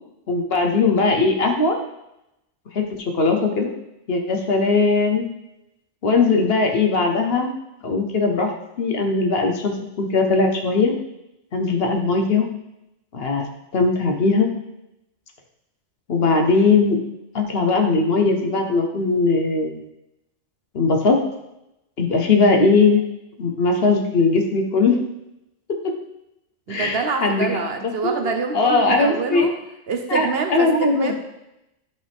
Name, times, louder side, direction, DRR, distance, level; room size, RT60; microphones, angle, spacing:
voice 1, 0.3-1.8 2.7-3.7 4.1-5.3 6.0-7.5 7.8-8.5 8.8-10.9 11.5-12.5 13.1-13.5 13.7-14.5 16.1-17.0 17.3-19.8 20.7-21.2 22.0-23.0 23.4-25.0 26.7-27.5 28.0-28.1 28.5-29.5 30.1-31.1, left 3 dB, 55° left, 3 dB, 1.1 m, -19 dB
voice 2, 26.7-29.5 29.9-31.1, right 4 dB, 60° right, 5 dB, 0.9 m, -26 dB
10.5 x 5.6 x 3.5 m, 0.88 s
omnidirectional pair, 1.3 m